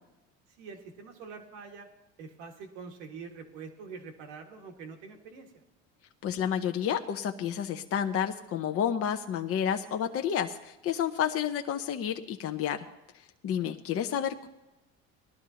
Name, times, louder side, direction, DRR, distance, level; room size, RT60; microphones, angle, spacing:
voice 1, 0.6-1.9 2.2-5.6 13.6-13.8, right 5 dB, 85° right, 2 dB, 1.8 m, -45 dB
voice 2, 6.2-12.9 13.4-14.5, left 9 dB, 45° left, 5 dB, 0.8 m, -30 dB
20.0 x 12.0 x 2.9 m, 1.0 s
supercardioid pair, 95°, 32 cm